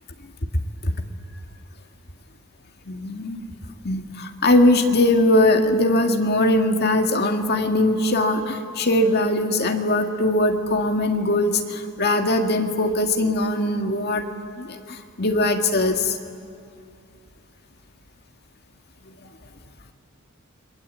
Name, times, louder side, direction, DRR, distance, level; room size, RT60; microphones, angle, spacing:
voice 1, 2.9-3.4 3.8-14.3 14.6-16.2, left 1 dB, 50° left, 5 dB, 1.9 m, -21 dB
29.5 x 22.0 x 8.4 m, 2.4 s
head